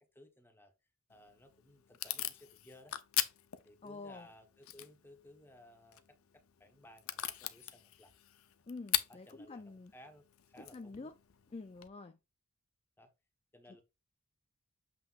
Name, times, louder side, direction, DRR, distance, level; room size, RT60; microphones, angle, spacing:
voice 1, 0.1-0.7 1.1-3.0 3.6-8.1 9.1-11.1 13.0-13.1 13.5-13.8, left 1 dB, 10° left, 1.0 m, -59 dB
Packing tape duct tape / Tearing, 1.1-11.9, left 13 dB, 70° left, 0.6 m, -42 dB
voice 2, 3.8-4.3 8.7-9.9 10.6-11.2 11.5-12.2, left 3 dB, 30° left, 0.4 m, -47 dB
7.6 x 5.7 x 2.4 m
head